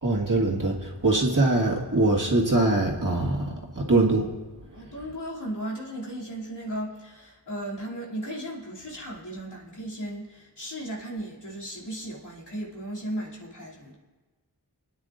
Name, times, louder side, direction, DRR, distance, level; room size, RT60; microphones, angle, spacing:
voice 1, 0.0-4.3, right 2 dB, 50° right, -2 dB, 1.8 m, -23 dB
voice 2, 4.7-14.0, right 1 dB, 75° left, -6 dB, 2.9 m, -36 dB
27.0 x 9.5 x 2.5 m, 1.3 s
wide cardioid pair, 45°, 41 cm